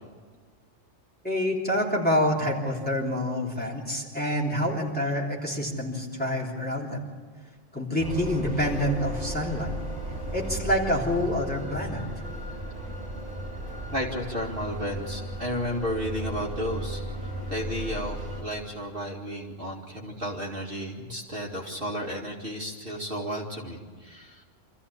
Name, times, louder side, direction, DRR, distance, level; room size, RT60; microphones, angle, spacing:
voice 1, 1.2-7.0 7.7-9.7 10.3-12.0, left 1 dB, 10° left, -4 dB, 3.5 m, -27 dB
sound 1, 8.0-18.4, right 1 dB, 35° right, 5.6 m, -35 dB
voice 2, 13.9-17.0 17.5-24.4, equal, 50° right, -1 dB, 2.5 m, -33 dB
26.0 x 14.5 x 8.7 m, 1.5 s
omnidirectional pair, 1.2 m